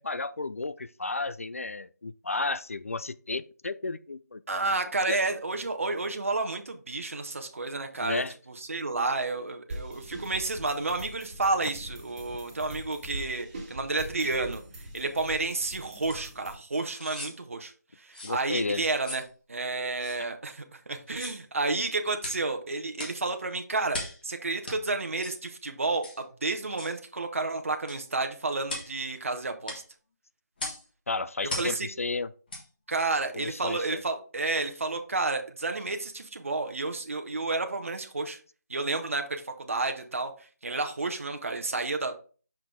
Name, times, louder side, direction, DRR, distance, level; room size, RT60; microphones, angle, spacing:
voice 1, 0.0-4.8 5.1-5.2 8.0-8.3 18.2-18.8 31.1-32.3 33.3-34.0, left 3 dB, 50° left, 0.3 m, -33 dB
voice 2, 4.5-8.2 8.7-14.6 14.9-17.7 18.0-19.2 19.5-29.8 31.6-31.9 32.9-38.4 38.7-40.3 40.6-42.1, right 3 dB, 50° right, 0.9 m, -31 dB
sound 1, 9.7-16.5, right 1 dB, 25° right, 1.9 m, -42 dB
Knives scraped and tapped together, 16.1-16.3 16.9-17.4 18.1-18.4 19.0-19.3 20.0-20.2 21.1-21.4 22.2-22.4 23.0-23.2 23.9-24.2 24.7-24.8 25.2-25.4 26.0-26.2 26.8-27.0 27.9-28.0 28.7-28.9 29.7-29.8 30.6-30.8 31.5-31.8 32.5-32.7 33.1-33.2, left 2 dB, 30° left, 1.5 m, -38 dB
6.1 x 4.9 x 3.5 m
figure-of-eight pair, 165°, 9 cm